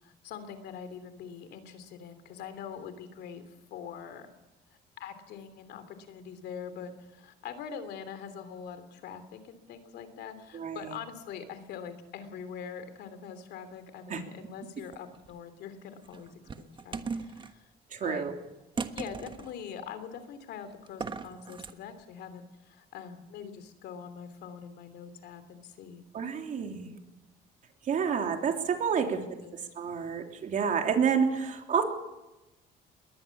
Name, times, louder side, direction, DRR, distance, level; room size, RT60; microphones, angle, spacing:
voice 1, 0.0-4.3 5.0-17.6 18.0-18.3 18.9-26.0 29.1-29.5, left 7 dB, 75° left, 11 dB, 3.0 m, -43 dB
voice 2, 10.5-11.0 14.1-14.2 17.9-18.4 26.1-27.0 27.8-29.2 29.7-31.8, right 6 dB, 50° right, 4 dB, 3.4 m, -29 dB
sound 1, 14.8-15.3 16.1-17.5 18.8-19.5 20.9-21.7, right 5 dB, 30° right, 1.4 m, -38 dB
21.5 x 19.0 x 7.2 m, 1.0 s
cardioid pair, 110°, 17 cm